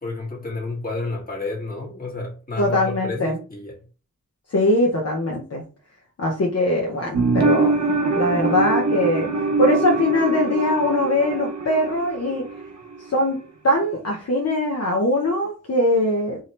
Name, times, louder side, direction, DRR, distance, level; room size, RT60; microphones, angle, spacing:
voice 1, 0.0-3.8, left 3 dB, 30° left, 1.7 m, -30 dB
voice 2, 2.6-3.4 4.5-5.6 6.2-7.8 8.1-9.3 9.6-12.4 13.1-13.4 13.6-16.4, left 1 dB, 55° left, 0.9 m, -21 dB
sound 1, 7.1-12.7 12.9-13.0, right 3 dB, 65° right, 1.0 m, -23 dB
3.6 x 2.8 x 3.1 m
wide cardioid pair, 90°, 30 cm